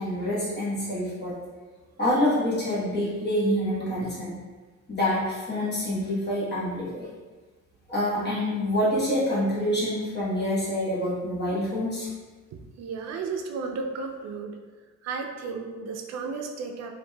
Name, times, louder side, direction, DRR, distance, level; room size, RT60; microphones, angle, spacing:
voice 1, 0.0-1.3 2.0-4.3 4.9-7.1 7.9-12.1, left 1 dB, 35° left, -9 dB, 1.2 m, -26 dB
voice 2, 12.8-14.6 15.0-16.9, right 4 dB, 60° right, 3 dB, 0.4 m, -33 dB
2.9 x 2.6 x 2.2 m, 1.3 s
cardioid pair, 90°, 30 cm